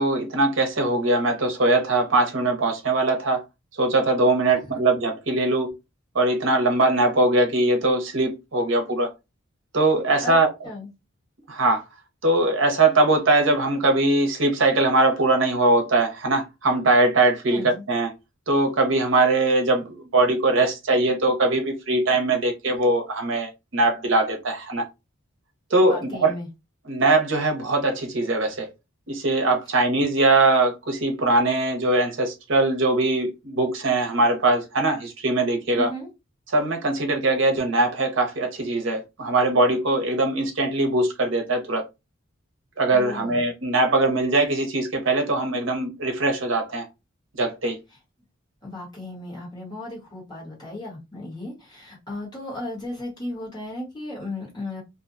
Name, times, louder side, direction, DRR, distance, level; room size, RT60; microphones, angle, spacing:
voice 1, 0.0-3.4 3.8-5.7 6.1-9.1 9.7-10.5 11.5-11.8 12.2-18.1 18.5-24.9 25.7-26.3 26.9-28.7 29.1-35.9 36.5-41.9 42.8-46.9 47.4-47.8, right 2 dB, 65° right, 0.7 m, -21 dB
voice 2, 17.5-17.8 25.8-26.5 35.8-36.1 42.9-43.4 48.6-54.8, left 1 dB, 20° left, 1.2 m, -35 dB
2.5 x 2.2 x 2.5 m
head